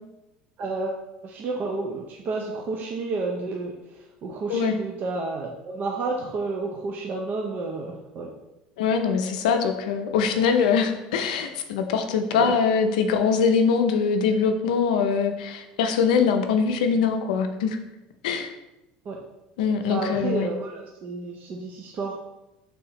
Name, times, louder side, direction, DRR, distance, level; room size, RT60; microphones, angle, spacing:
voice 1, 0.6-1.0 1.2-3.7 4.2-8.3 12.3-12.5 19.1-19.2 19.9-22.2, right 3 dB, 45° right, 0 dB, 0.5 m, -30 dB
voice 2, 8.8-17.8 18.2-18.5 19.6-20.5, left 6 dB, 80° left, 6 dB, 0.5 m, -23 dB
3.5 x 2.8 x 4.1 m, 0.97 s
hypercardioid pair, 85°, 4 cm